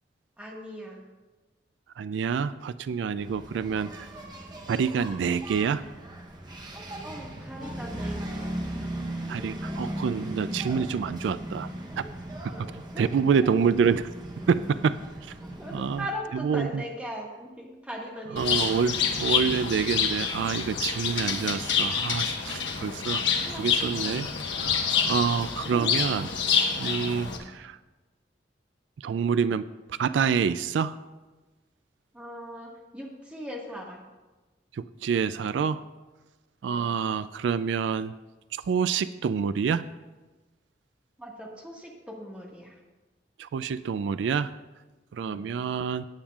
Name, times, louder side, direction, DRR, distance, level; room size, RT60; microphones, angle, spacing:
voice 1, 0.4-1.0 6.8-8.6 12.5-12.7 12.9-13.5 15.4-18.9 23.3-23.6 24.9-25.2 25.7-25.9 32.1-34.0 41.2-42.8 45.3-45.4, equal, 5° right, -2 dB, 1.6 m, -40 dB
voice 2, 2.0-4.1 4.7-5.8 9.3-11.7 12.0-12.1 12.4-14.1 14.5-15.0 15.7-16.0 16.3-16.8 18.3-23.2 23.6-24.3 25.1-26.3 26.8-27.8 29.0-29.6 29.9-30.9 34.7-35.8 36.6-38.1 38.7-39.8 43.4-44.5 45.1-46.0, right 6 dB, 85° right, 14 dB, 0.3 m, -27 dB
Engine, 3.2-16.2, right 1 dB, 25° right, 0.8 m, -38 dB
Bird, 18.4-27.4, left 6 dB, 85° left, 1.2 m, -27 dB
17.0 x 8.8 x 2.4 m, 1.2 s
head